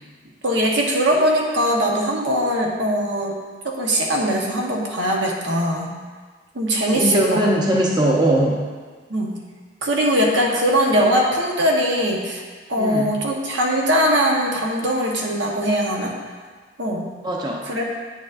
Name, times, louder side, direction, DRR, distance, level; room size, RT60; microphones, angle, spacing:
voice 1, 0.4-3.4 3.6-5.9 6.5-7.4 9.1-9.4 9.8-12.4 12.7-16.1 16.8-17.1 17.6-17.8, equal, 85° right, -1 dB, 1.2 m, -21 dB
voice 2, 6.9-8.6 12.8-13.1 17.2-17.6, right 1 dB, 25° right, -2 dB, 0.8 m, -20 dB
9.1 x 7.1 x 2.6 m, 1.5 s
head